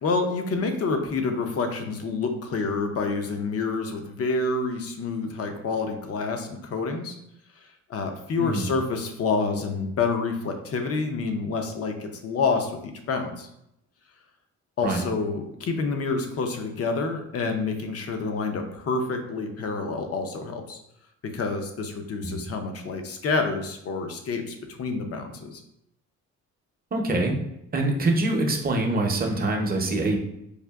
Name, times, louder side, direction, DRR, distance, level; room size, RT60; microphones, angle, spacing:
voice 1, 0.0-7.1 7.9-13.5 14.8-20.8 21.2-25.6, left 4 dB, 50° left, 6 dB, 0.6 m, -28 dB
voice 2, 26.9-27.3 27.7-30.2, right 2 dB, 30° right, 2 dB, 0.7 m, -24 dB
4.8 x 2.4 x 2.3 m, 0.79 s
cardioid pair, 90°, 30 cm